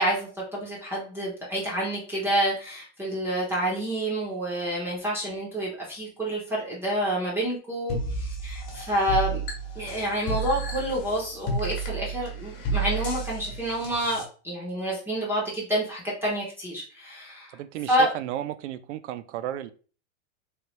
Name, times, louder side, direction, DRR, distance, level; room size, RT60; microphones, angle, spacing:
voice 1, 0.0-9.4 9.7-17.6 17.9-18.1, right 1 dB, 5° right, -5 dB, 0.6 m, -28 dB
sound 1, 7.9-14.2, right 3 dB, 40° left, 1.0 m, -31 dB
voice 2, 17.5-19.7, right 12 dB, 70° right, 13 dB, 0.5 m, -33 dB
3.2 x 3.0 x 3.0 m, 0.39 s
supercardioid pair, 165°, 36 cm